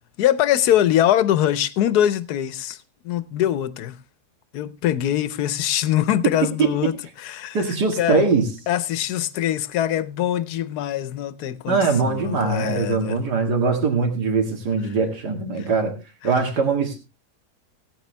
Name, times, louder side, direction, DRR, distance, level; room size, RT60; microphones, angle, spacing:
voice 1, 0.2-4.0 4.5-8.3 8.7-11.8 12.0-13.2 15.6-15.7, left 11 dB, 75° left, 1.3 m, -23 dB
voice 2, 7.5-8.5 11.7-16.0 16.2-17.0, right 4 dB, 85° right, 2.5 m, -21 dB
16.5 x 9.4 x 3.3 m
omnidirectional pair, 1.7 m